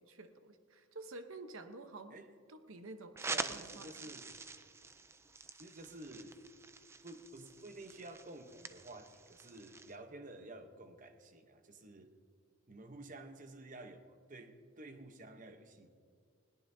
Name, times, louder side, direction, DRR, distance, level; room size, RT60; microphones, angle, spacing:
voice 1, 0.0-2.2 2.5-3.9, right 2 dB, 75° right, 9 dB, 0.9 m, -50 dB
sound 1, 3.2-10.0, right 3 dB, 10° right, 0.3 m, -46 dB
voice 2, 3.3-4.4 5.6-6.4 7.0-12.2 12.7-15.9, right 2 dB, 35° right, 7 dB, 0.9 m, -51 dB
20.5 x 17.5 x 2.7 m, 2.2 s
head